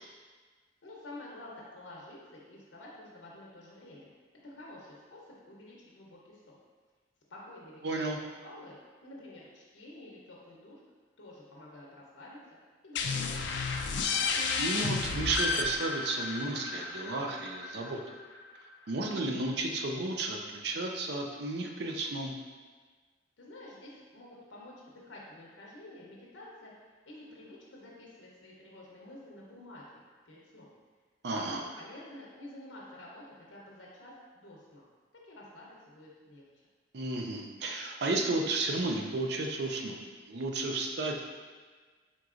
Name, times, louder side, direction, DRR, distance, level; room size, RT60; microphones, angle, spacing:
voice 1, 0.8-4.1 4.4-6.6 7.3-8.8 9.0-10.8 11.2-12.4 12.8-13.5 23.4-26.7 27.1-29.8 30.2-30.7 31.3-34.9 35.2-36.5, left 1 dB, 85° left, -4 dB, 0.8 m, -49 dB
voice 2, 7.8-8.2 14.6-18.0 18.9-22.3 31.2-31.6 36.9-40.0 40.3-41.2, right 2 dB, 60° right, 2 dB, 0.5 m, -33 dB
sound 1, 13.0-18.4, left 4 dB, 70° left, 0.4 m, -32 dB
4.5 x 3.7 x 2.5 m, 1.4 s
head